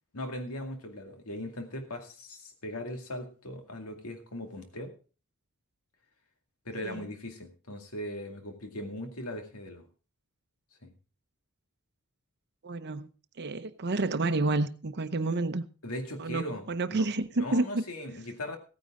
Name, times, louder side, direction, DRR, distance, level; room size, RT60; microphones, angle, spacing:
voice 1, 0.1-4.9 6.6-9.9 10.8-10.9 15.8-16.6 16.9-17.1 17.4-18.6, left 1 dB, 80° left, 2.3 m, -39 dB
voice 2, 12.6-13.1 13.4-15.6 16.2-17.8, right 2 dB, 50° right, 0.8 m, -29 dB
16.5 x 9.5 x 3.8 m
head